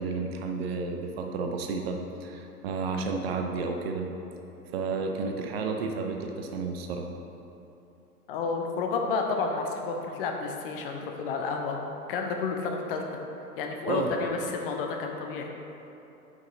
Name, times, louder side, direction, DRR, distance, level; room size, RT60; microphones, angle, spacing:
voice 1, 0.0-4.1 4.7-7.1 13.9-14.1, right 4 dB, 40° right, 3 dB, 0.6 m, -31 dB
voice 2, 8.3-11.8 12.1-13.0 13.6-15.5, left 4 dB, 35° left, 2 dB, 0.6 m, -30 dB
5.6 x 5.3 x 3.8 m, 3.0 s
figure-of-eight pair, 105°, 46 cm